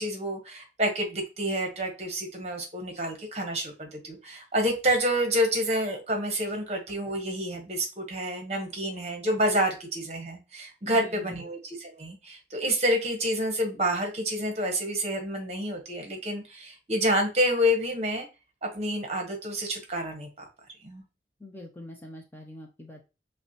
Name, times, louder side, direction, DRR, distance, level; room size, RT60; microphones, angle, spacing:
voice 1, 0.0-18.3 18.6-20.5 20.8-21.0, equal, 40° right, 3 dB, 0.9 m, -28 dB
voice 2, 10.8-11.5 21.4-23.0, left 2 dB, 10° left, 1 dB, 0.4 m, -44 dB
5.5 x 2.1 x 2.8 m, 0.29 s
head